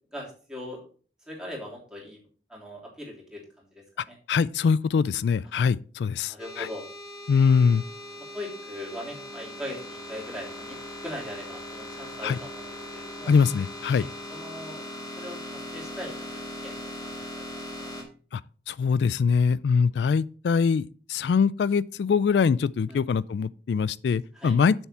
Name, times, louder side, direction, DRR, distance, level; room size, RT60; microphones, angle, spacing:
voice 1, 0.1-0.8 1.3-2.2 2.5-4.2 6.2-6.8 7.7-7.8 8.2-10.8 11.0-13.3 14.0-14.8 15.2-18.0 22.9-23.0 24.3-24.5, left 1 dB, 5° right, 3.3 m, -40 dB
voice 2, 4.3-6.7 7.3-7.8 12.2-12.4 13.3-14.1 18.3-18.4 18.7-24.7, left 5 dB, 70° left, 0.3 m, -23 dB
sound 1, 6.4-18.0, left 1 dB, 25° left, 2.2 m, -39 dB
7.2 x 6.9 x 4.4 m
head